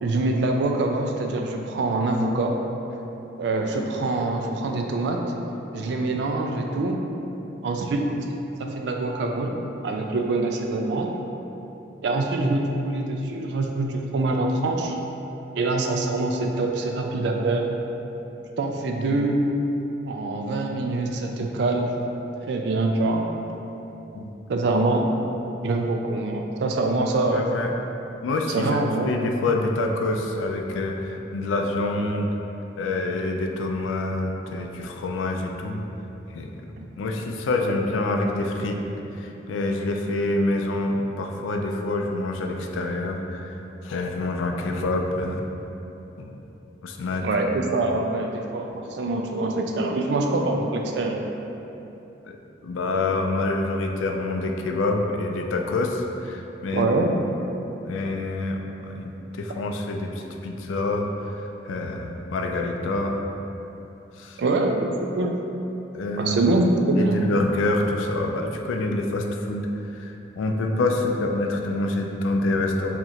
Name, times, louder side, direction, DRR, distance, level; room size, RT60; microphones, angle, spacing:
voice 1, 0.0-2.6 3.4-5.2 5.7-7.0 7.6-8.1 8.6-11.1 12.0-14.9 15.6-17.7 18.6-19.5 20.0-21.9 22.4-23.3 24.5-25.1 25.6-27.4 28.5-29.2 36.8-36.9 47.2-51.2 56.7-57.1 64.4-65.4 66.2-67.2, right 2 dB, 60° right, 2 dB, 0.3 m, -24 dB
voice 2, 27.3-27.7 28.2-32.3 32.8-35.8 36.3-36.5 36.9-38.8 39.1-43.6 43.8-45.4 46.2-46.3 46.8-47.3 52.3-52.4 52.6-56.9 57.8-61.4 61.6-63.2 64.2-64.4 65.9-66.4 67.0-73.0, left 2 dB, 85° left, 3 dB, 0.3 m, -26 dB
2.9 x 2.4 x 4.1 m, 3.0 s
head